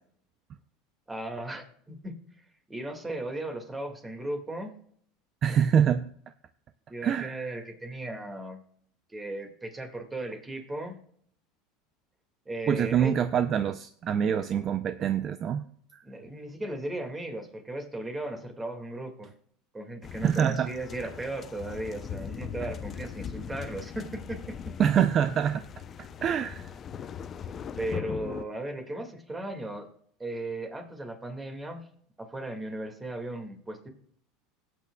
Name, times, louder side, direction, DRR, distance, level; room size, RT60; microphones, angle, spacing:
voice 1, 1.1-2.2 2.7-4.7 6.9-8.6 9.1-11.0 12.5-13.2 16.0-19.3 19.7-24.7 27.4-29.9 30.2-31.9 32.2-33.9, right 1 dB, 15° right, 5 dB, 2.0 m, -36 dB
voice 2, 5.4-6.1 7.0-7.6 12.7-15.6 15.9-16.0 20.2-20.7 24.8-25.6 26.2-26.7, right 8 dB, 40° right, 11 dB, 0.5 m, -25 dB
sound 1, 20.0-28.4, left 8 dB, 35° left, 0.5 m, -40 dB
18.0 x 8.5 x 2.3 m, 0.62 s
supercardioid pair, 120°, 0 cm